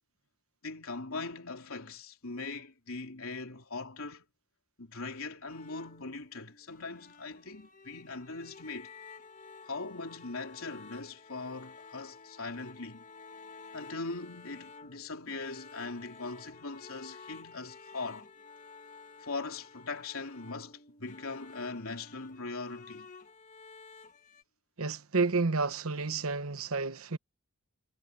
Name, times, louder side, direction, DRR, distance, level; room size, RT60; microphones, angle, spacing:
voice 1, 0.6-4.2 4.8-8.9 9.6-13.0 13.7-18.3 19.2-23.1, left 3 dB, 70° left, 3.4 m, -40 dB
sound 1, 5.5-24.4, left 4 dB, 35° left, 1.5 m, -52 dB
voice 2, 24.8-27.2, right 4 dB, 75° right, 1.1 m, -30 dB
head